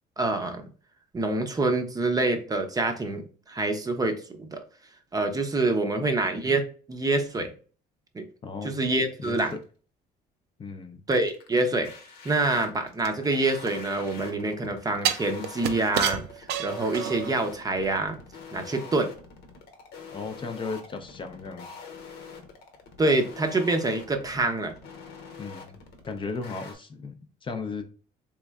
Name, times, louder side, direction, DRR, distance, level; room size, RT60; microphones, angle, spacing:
voice 1, 0.2-0.7 1.1-4.1 4.4-4.6 5.1-6.6 6.9-7.5 8.1-8.3 8.6-9.5 11.1-11.9 12.2-18.2 18.5-19.1 23.0-24.7, right 2 dB, 20° right, 0.6 m, -26 dB
voice 2, 8.4-8.7 9.2-9.4 10.6-11.0 20.1-21.7 25.4-27.1 27.4-27.8, left 4 dB, 30° left, 0.5 m, -35 dB
sound 1, 9.2-9.6 11.1-26.7, left 5 dB, 75° left, 0.9 m, -45 dB
sound 2, 13.0-14.2 15.0-17.4 17.8-17.9, right 9 dB, 75° right, 0.5 m, -30 dB
3.5 x 3.1 x 2.3 m
cardioid pair, 110°, 17 cm